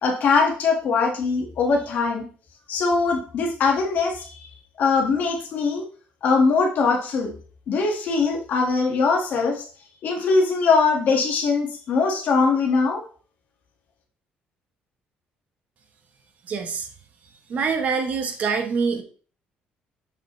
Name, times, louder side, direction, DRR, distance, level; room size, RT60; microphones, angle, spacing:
voice 1, 0.0-2.2 2.7-4.5 4.8-5.9 6.2-7.3 7.7-9.6 10.0-13.0, left 4 dB, 55° left, 1 dB, 1.7 m, -21 dB
voice 2, 16.5-16.9 17.5-19.0, right 5 dB, 45° right, 6 dB, 1.1 m, -25 dB
7.0 x 5.4 x 3.1 m, 0.41 s
cardioid pair, 150°, 3 cm